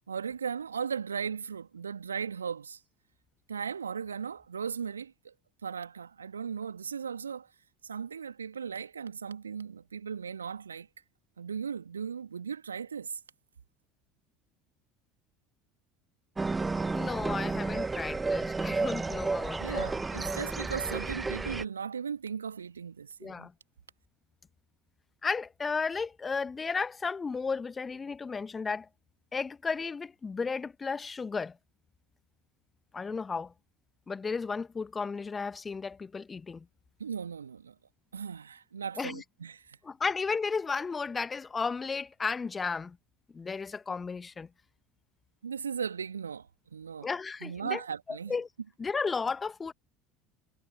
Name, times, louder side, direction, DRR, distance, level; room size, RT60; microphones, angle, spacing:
voice 1, 0.1-2.8 3.5-5.3 5.6-7.5 7.8-10.9 11.4-13.2 19.6-23.5 37.0-37.8 38.1-39.8 45.4-47.1 47.4-48.3, right 6 dB, 80° right, 2.4 m, -37 dB
sound 1, 16.4-21.6, right 3 dB, 15° right, 1.2 m, -32 dB
voice 2, 16.9-19.9 23.2-23.5 25.2-28.9 29.3-31.6 32.9-33.5 34.1-36.6 39.0-39.2 39.8-43.0 43.3-44.5 47.0-47.8 48.1-48.5 48.8-49.7, left 5 dB, 20° left, 1.4 m, -34 dB
figure-of-eight pair, 70°, 0 cm